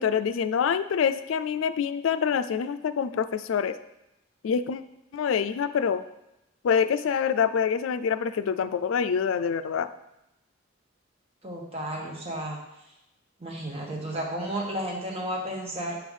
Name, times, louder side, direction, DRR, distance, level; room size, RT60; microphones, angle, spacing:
voice 1, 0.0-3.7 4.4-4.8 5.1-6.0 6.6-9.9, left 7 dB, 85° left, 12 dB, 0.3 m, -26 dB
voice 2, 11.4-12.6 13.4-15.9, right 1 dB, 30° right, -2 dB, 1.3 m, -32 dB
7.7 x 3.3 x 5.4 m, 0.90 s
head